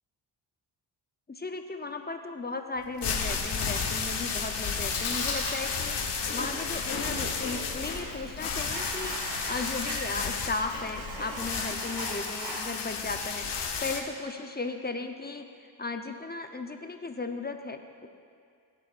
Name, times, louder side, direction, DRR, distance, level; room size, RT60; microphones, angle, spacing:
voice 1, 1.3-13.5 13.8-18.1, left 3 dB, 20° left, 5 dB, 0.8 m, -36 dB
sound 1, 2.8-14.0, left 5 dB, 55° left, 1.3 m, -33 dB
Chewing mastication, 4.4-11.7, left 3 dB, 75° left, 2.9 m, -38 dB
sound 2, 8.7-10.0 10.6-12.6, right 2 dB, 70° right, 2.7 m, -40 dB
17.5 x 8.4 x 2.6 m, 2.2 s
cardioid pair, 70°, 48 cm